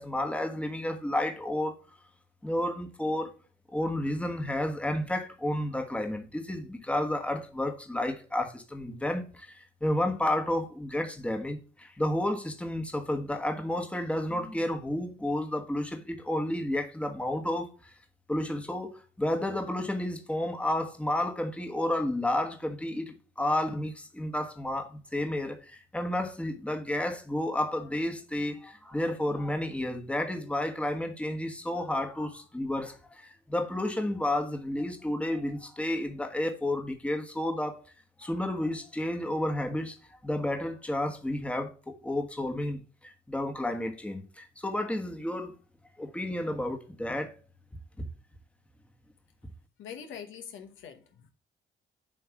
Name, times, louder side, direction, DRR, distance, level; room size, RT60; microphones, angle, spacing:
voice 1, 0.0-1.8 2.4-3.3 3.7-17.9 18.3-37.8 38.2-40.0 40.2-45.5 46.0-47.3 48.0-48.1, left 1 dB, 5° left, 1.2 m, -31 dB
voice 2, 49.8-51.3, left 7 dB, 75° left, 1.1 m, -44 dB
7.4 x 3.1 x 5.9 m
cardioid pair, 90°, 20 cm